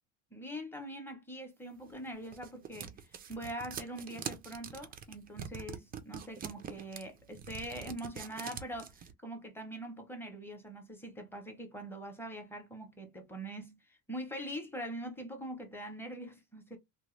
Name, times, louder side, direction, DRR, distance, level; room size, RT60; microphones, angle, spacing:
voice 1, 0.3-16.8, right 1 dB, 5° left, 0.7 m, -43 dB
sound 1, 1.8-9.1, right 8 dB, 25° right, 0.3 m, -44 dB
2.9 x 2.2 x 3.1 m
cardioid pair, 130°, 40 cm